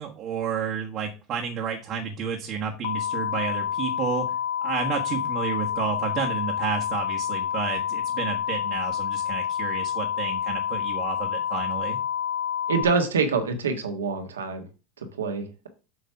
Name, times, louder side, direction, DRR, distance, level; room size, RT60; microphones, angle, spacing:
voice 1, 0.0-4.3 4.6-12.0, right 7 dB, 45° right, -1 dB, 1.4 m, -31 dB
sound 1, 2.8-12.8, left 9 dB, 70° left, 1.0 m, -28 dB
voice 2, 12.7-14.6 15.2-15.7, right 4 dB, 85° right, 4 dB, 1.4 m, -25 dB
7.7 x 3.1 x 5.8 m, 0.33 s
hypercardioid pair, 85°, 0 cm